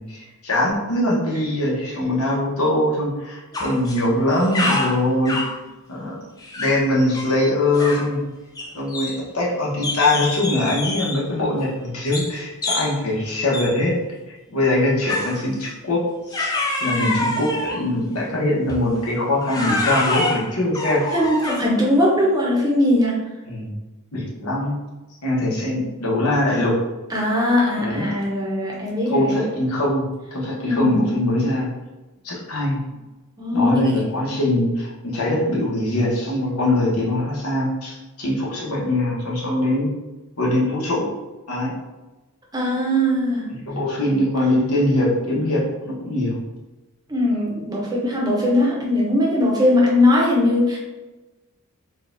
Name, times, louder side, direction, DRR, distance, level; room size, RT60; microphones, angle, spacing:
voice 1, 0.0-5.4 5.9-6.2 6.6-8.2 8.7-13.9 14.3-16.5 16.8-21.0 23.5-23.7 24.1-24.7 25.2-26.8 27.7-28.1 29.1-30.0 30.3-31.7 32.2-32.8 33.5-39.9 40.4-41.1 41.5-41.7 43.7-46.4, left 1 dB, 85° left, -4 dB, 1.0 m, -22 dB
sound 1, 3.5-4.0 4.3-5.6 6.4-6.9 7.1-7.3 7.7-8.1 8.6-9.5 9.8-11.3 12.1-12.3 12.6-13.0 13.5-13.8 15.1-15.4 16.3-17.9 18.7-18.9 19.4-21.8, left 2 dB, 15° left, 0.3 m, -26 dB
voice 2, 21.1-23.2 27.1-29.5 30.6-31.1 33.4-34.0 42.5-43.5 47.1-50.8, left 1 dB, 20° right, -4 dB, 0.7 m, -20 dB
3.9 x 2.4 x 2.5 m, 1.1 s
head